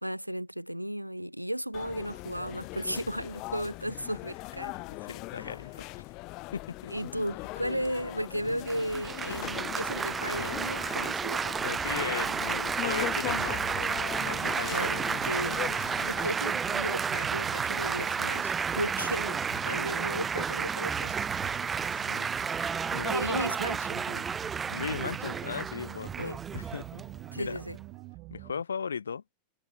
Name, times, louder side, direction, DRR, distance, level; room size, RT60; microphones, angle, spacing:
voice 1, 0.0-4.8 5.4-5.6 6.9-11.5 14.7-15.0 15.3-15.6 16.0-21.1 23.1-24.3 26.2-26.4 27.3-27.8, equal, 90° right, 1.0 m, -35 dB
sound 1, 1.7-16.3, left 24 dB, 40° left, 1.0 m, -40 dB
voice 2, 4.9-6.1 6.5-6.9 11.2-13.6 14.2-15.1 18.7-18.8 19.5-19.6 21.9-23.4 24.7-27.0 27.3-27.6 28.3-29.2, left 6 dB, 70° left, 1.6 m, -38 dB
Laughter / Applause / Chatter, 8.7-27.8, right 6 dB, 20° right, 1.3 m, -32 dB
sound 2, 13.3-28.6, right 24 dB, 40° right, 2.2 m, -44 dB
figure-of-eight pair, 90°, 0 cm